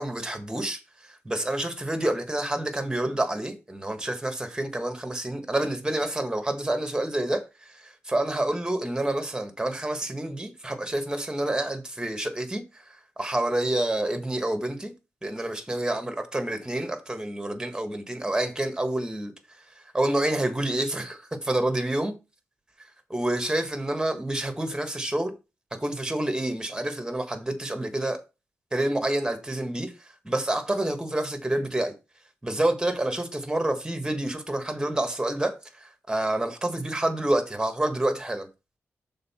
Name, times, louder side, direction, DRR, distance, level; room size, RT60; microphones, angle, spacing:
voice 1, 0.0-12.8 13.2-14.9 15.2-19.3 19.7-22.1 23.1-25.3 25.8-28.2 28.7-31.9 32.4-38.5, right 1 dB, 15° right, 1.6 m, -28 dB
6.7 x 3.9 x 5.7 m
wide cardioid pair, 95°, 5 cm